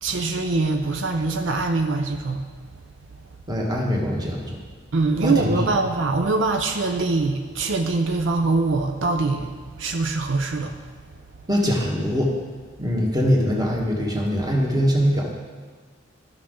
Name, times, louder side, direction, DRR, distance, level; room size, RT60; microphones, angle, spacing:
voice 1, 0.0-2.5 4.9-10.8, right 3 dB, 75° right, 4 dB, 0.6 m, -23 dB
voice 2, 3.5-4.6 5.2-5.6 11.5-12.3 12.8-15.3, equal, 20° right, -2 dB, 1.4 m, -22 dB
12.5 x 6.1 x 3.8 m, 1.5 s
head